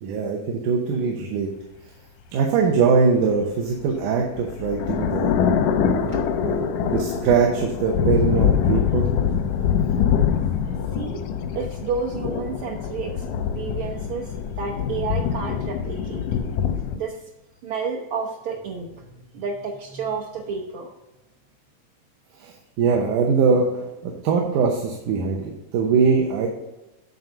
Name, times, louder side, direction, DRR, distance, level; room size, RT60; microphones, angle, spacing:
voice 1, 0.0-1.5 2.3-5.3 6.0-9.1 22.4-26.5, right 5 dB, 90° right, 1 dB, 2.4 m, -22 dB
sound 1, 3.9-17.0, left 7 dB, 90° left, 2.2 m, -24 dB
voice 2, 11.5-16.2 16.9-17.3 17.6-20.9, right 5 dB, 75° right, 0 dB, 1.2 m, -31 dB
9.4 x 4.0 x 5.5 m, 1.0 s
omnidirectional pair, 3.5 m